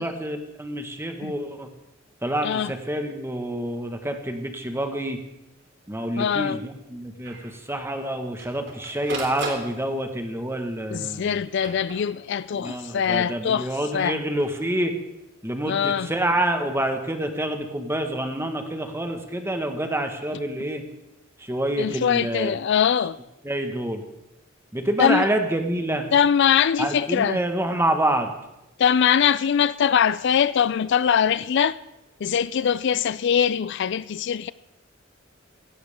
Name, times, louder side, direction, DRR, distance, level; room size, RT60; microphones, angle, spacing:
voice 1, 0.0-1.7 2.2-5.2 5.9-11.4 12.5-14.9 15.4-20.8 21.4-22.6 23.4-24.0 24.7-26.1 26.8-28.3, right 1 dB, 15° right, 1.5 m, -27 dB
Printer, 5.6-5.7 6.0-6.1 6.5-6.6 7.3-7.5 8.1-10.2 11.0-12.5 14.2-14.6, right 3 dB, 60° right, 3.0 m, -38 dB
voice 2, 6.2-6.6 10.9-14.2 15.7-16.1 21.8-23.2 25.0-25.3 26.1-27.4 28.8-31.8 32.2-34.5, left 8 dB, 60° left, 0.4 m, -22 dB
17.0 x 16.0 x 3.6 m
head